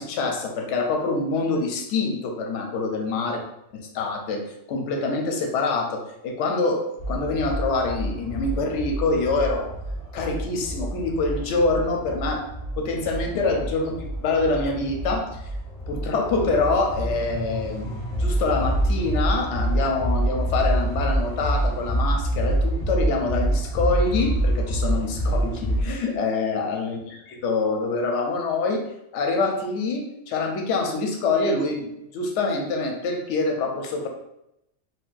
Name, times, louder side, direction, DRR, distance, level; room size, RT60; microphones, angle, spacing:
voice 1, 0.0-3.4 3.9-9.7 10.1-12.5 12.8-15.4 15.9-17.9 18.2-28.8 29.1-34.1, left 3 dB, 70° left, 2 dB, 0.9 m, -25 dB
sound 1, 7.0-25.8, right 1 dB, 40° left, 0.8 m, -27 dB
2.5 x 2.3 x 3.8 m, 0.83 s
omnidirectional pair, 1.3 m